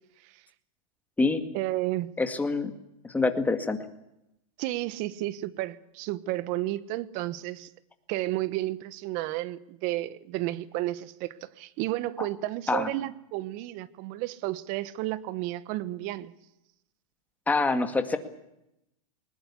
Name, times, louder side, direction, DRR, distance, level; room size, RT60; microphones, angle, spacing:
voice 1, 1.5-2.1 4.6-7.7 8.1-16.3, right 16 dB, 40° right, 1.2 m, -32 dB
voice 2, 2.2-2.7 3.0-3.8 12.2-12.3 12.7-12.9 17.5-18.2, left 3 dB, 10° left, 2.1 m, -25 dB
20.5 x 20.0 x 8.4 m
hypercardioid pair, 135°, 19 cm